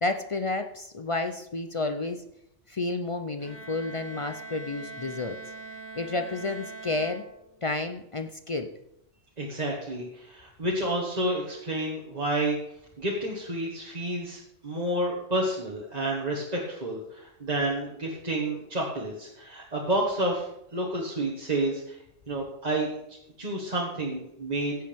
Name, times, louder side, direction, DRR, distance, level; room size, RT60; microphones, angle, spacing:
voice 1, 0.0-2.2 2.7-5.4 6.0-7.2 7.6-8.7, left 2 dB, 45° left, 7 dB, 0.4 m, -31 dB
Bowed string instrument, 3.4-7.8, right 2 dB, 65° left, 2.9 m, -42 dB
voice 2, 9.4-12.6 13.0-22.0 22.3-24.8, right 1 dB, 35° right, -4 dB, 1.6 m, -30 dB
16.0 x 8.0 x 3.5 m, 0.79 s
omnidirectional pair, 1.3 m